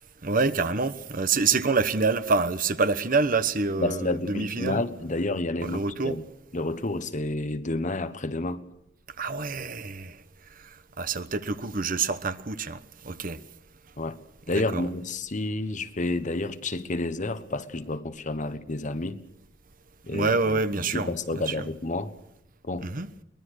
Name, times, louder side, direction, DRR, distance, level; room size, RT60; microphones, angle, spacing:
voice 1, 0.2-4.8 5.6-6.2 9.2-10.2 11.0-13.4 14.5-14.9 20.1-21.6 22.8-23.1, right 4 dB, 45° right, 1.1 m, -27 dB
voice 2, 3.8-6.2 6.5-8.6 14.0-14.2 14.5-19.2 20.1-20.6 20.9-22.1 22.6-22.9, left 2 dB, 40° left, 1.1 m, -30 dB
23.5 x 20.5 x 6.5 m
head